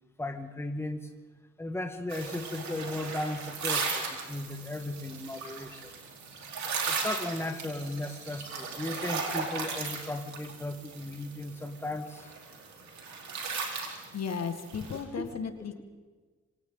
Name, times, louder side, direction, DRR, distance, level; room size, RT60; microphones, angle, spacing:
voice 1, 0.2-1.1 1.6-5.9 6.9-12.3 15.2-15.3, left 1 dB, 10° left, 5 dB, 1.7 m, -36 dB
sound 1, 2.1-15.0, right 4 dB, 65° right, 4.3 m, -37 dB
voice 2, 14.1-15.8, left 6 dB, 60° left, 7 dB, 1.9 m, -35 dB
26.0 x 26.0 x 4.0 m, 1.4 s
cardioid pair, 90°, 30 cm